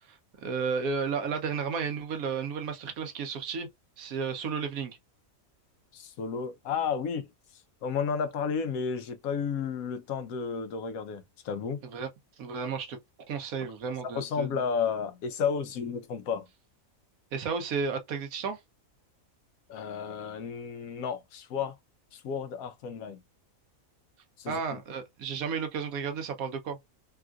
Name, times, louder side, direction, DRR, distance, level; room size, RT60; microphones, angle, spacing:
voice 1, 0.0-3.7 4.0-5.0 11.8-12.1 12.4-13.0 13.3-14.6 17.3-18.6 24.5-26.8, right 5 dB, 85° right, 1.2 m, -33 dB
voice 2, 5.9-11.8 14.1-16.5 19.7-21.8 22.1-23.2 24.4-24.8, left 6 dB, 85° left, 1.1 m, -32 dB
3.5 x 2.4 x 2.3 m
omnidirectional pair, 1.4 m